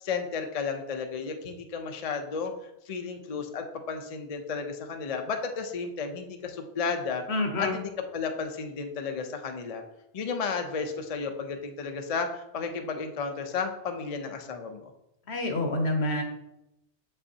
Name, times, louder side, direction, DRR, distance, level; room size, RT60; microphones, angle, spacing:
voice 1, 0.0-2.5 2.9-7.2 7.6-9.8 10.1-14.9, left 5 dB, 45° left, 5 dB, 0.5 m, -33 dB
voice 2, 7.3-7.8 15.3-16.2, left 2 dB, 70° left, 4 dB, 1.2 m, -27 dB
6.9 x 5.5 x 2.8 m, 0.86 s
omnidirectional pair, 1.2 m